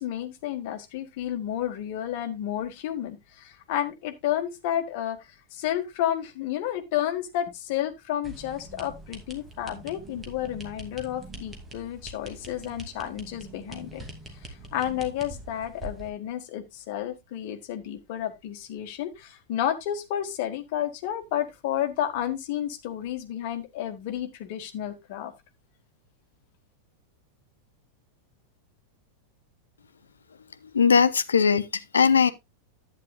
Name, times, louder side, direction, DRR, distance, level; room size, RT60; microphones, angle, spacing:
voice 1, 0.0-14.1 14.5-25.3, left 11 dB, 50° left, 1.4 m, -31 dB
sound 1, 8.2-16.1, right 2 dB, 15° right, 2.4 m, -43 dB
voice 2, 30.7-32.3, left 6 dB, 70° left, 0.7 m, -20 dB
11.0 x 9.2 x 2.4 m
figure-of-eight pair, 90°, 0 cm